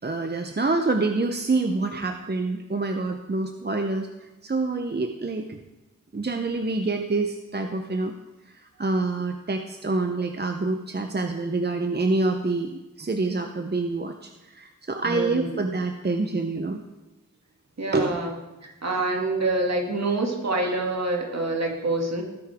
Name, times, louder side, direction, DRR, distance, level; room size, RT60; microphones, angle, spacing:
voice 1, 0.0-5.6 6.1-8.1 8.5-16.8 17.9-18.2, right 3 dB, 30° right, 5 dB, 0.9 m, -27 dB
voice 2, 15.0-15.6 17.8-18.3 18.6-22.2, right 2 dB, 55° right, 1 dB, 2.4 m, -26 dB
19.0 x 9.5 x 3.7 m, 1.1 s
cardioid pair, 45°, 32 cm